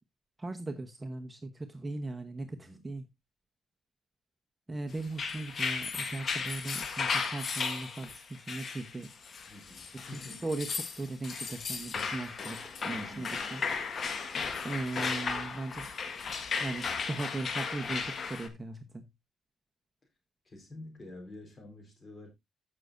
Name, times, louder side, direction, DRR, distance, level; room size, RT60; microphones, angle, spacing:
voice 1, 0.4-3.0 4.7-9.1 10.1-10.7 11.0-13.6 14.6-15.9 16.6-19.0, right 2 dB, 15° right, 1.0 m, -38 dB
voice 2, 2.5-2.8 9.5-10.5 12.9-13.3 20.4-22.3, left 2 dB, 30° left, 4.4 m, -48 dB
sound 1, 5.0-18.5, left 5 dB, 50° left, 1.6 m, -35 dB
15.0 x 6.4 x 2.6 m
cardioid pair, 90°, 0 cm